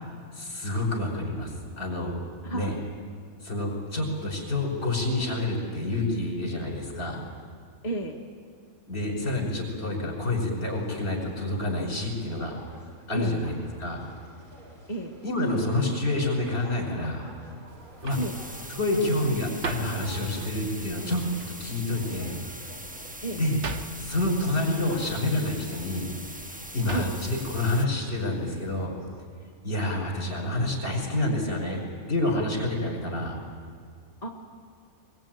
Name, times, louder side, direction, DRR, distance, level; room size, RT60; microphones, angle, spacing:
voice 1, 0.3-2.2 2.5-2.7 3.4-7.2 8.9-12.6 13.1-14.0 15.2-17.2 18.0-18.2 18.8-21.2 21.6-22.4 23.3-23.6 24.0-26.0 26.3-28.9 29.6-31.8 32.1-33.4, left 1 dB, 50° left, 0 dB, 5.9 m, -28 dB
voice 2, 2.4-2.8 7.8-8.2 13.1-13.4 14.9-15.1 18.2-18.4 23.2-23.4 26.9-27.1 34.2-34.3, right 2 dB, 30° left, -1 dB, 1.4 m, -32 dB
sound 1, 10.7-27.3, right 1 dB, 85° right, 4.8 m, -51 dB
sound 2, 17.7-28.9, right 4 dB, 55° right, 1.3 m, -43 dB
sound 3, 18.1-27.9, right 1 dB, 10° right, 0.5 m, -42 dB
22.5 x 22.0 x 9.2 m, 2.1 s
omnidirectional pair, 1.5 m